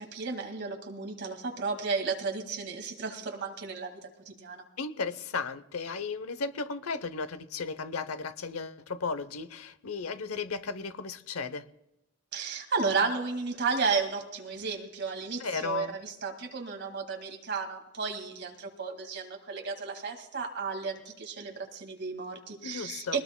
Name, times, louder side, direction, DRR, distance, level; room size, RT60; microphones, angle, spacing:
voice 1, 0.0-4.0 4.3-4.6 12.3-23.2, right 4 dB, 55° right, 3 dB, 2.0 m, -33 dB
voice 2, 4.8-11.7 15.4-16.0 22.6-23.2, left 4 dB, 90° left, 13 dB, 0.8 m, -35 dB
21.0 x 19.0 x 2.2 m, 0.90 s
head